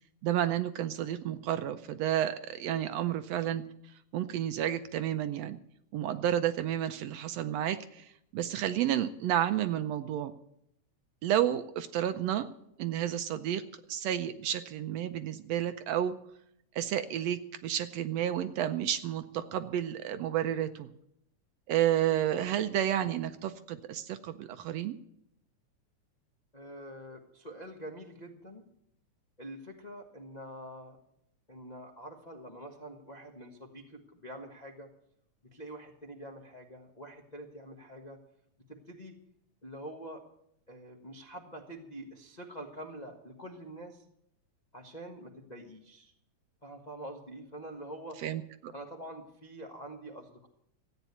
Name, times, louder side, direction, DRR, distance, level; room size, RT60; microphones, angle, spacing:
voice 1, 0.2-3.6 4.1-5.6 5.9-10.3 11.2-12.5 12.8-13.6 13.9-16.1 16.7-20.9 21.7-25.0 48.2-48.7, right 11 dB, 75° right, 10 dB, 1.7 m, -31 dB
voice 2, 26.5-28.6 29.4-31.0 31.5-34.9 35.5-38.2 38.7-39.2 39.6-40.2 40.7-44.0 44.7-46.1 46.6-48.2 48.7-50.5, right 1 dB, 35° left, 1 dB, 0.6 m, -46 dB
14.5 x 9.1 x 8.3 m, 0.75 s
omnidirectional pair, 3.3 m